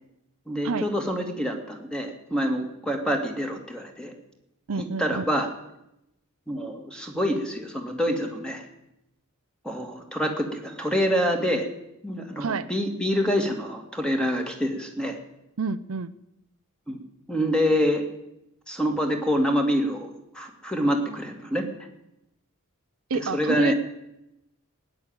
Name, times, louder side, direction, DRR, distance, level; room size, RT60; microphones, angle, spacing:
voice 1, 0.5-4.1 4.8-5.5 6.5-8.6 9.6-11.7 12.0-15.2 16.9-17.0 17.3-18.0 18.7-21.7 23.1-23.7, equal, 5° left, 4 dB, 2.2 m, -26 dB
voice 2, 4.7-5.2 12.4-12.7 15.6-16.1 23.1-23.7, right 4 dB, 70° right, 13 dB, 0.6 m, -29 dB
16.0 x 10.0 x 8.9 m, 0.86 s
head